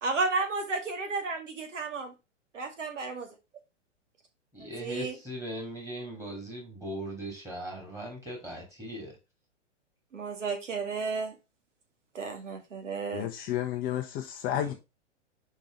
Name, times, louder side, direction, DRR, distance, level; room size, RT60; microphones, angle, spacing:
voice 1, 0.0-2.1 2.5-3.3 4.6-5.2 10.1-11.3 12.1-13.3, right 4 dB, 75° right, 2.0 m, -32 dB
voice 2, 4.5-9.1 14.6-14.8, right 1 dB, 10° right, 3.1 m, -39 dB
voice 3, 13.1-14.7, left 11 dB, 25° left, 0.6 m, -31 dB
5.3 x 4.6 x 5.0 m
hypercardioid pair, 115°, 37 cm